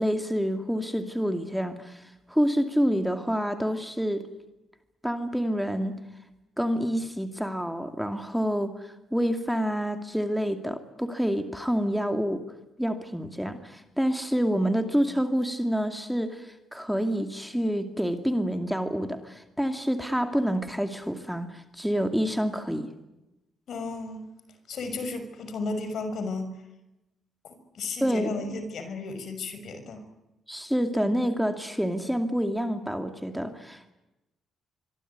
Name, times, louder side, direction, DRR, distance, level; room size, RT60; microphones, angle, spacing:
voice 1, 0.0-4.2 5.0-6.0 6.6-12.4 12.8-22.9 28.0-28.3 30.5-33.9, equal, ahead, 6 dB, 2.4 m, -28 dB
voice 2, 23.7-24.2 24.7-26.5 27.4-30.0, left 3 dB, 60° left, 9 dB, 6.0 m, -34 dB
25.0 x 24.0 x 9.6 m, 0.96 s
cardioid pair, 105°, 0 cm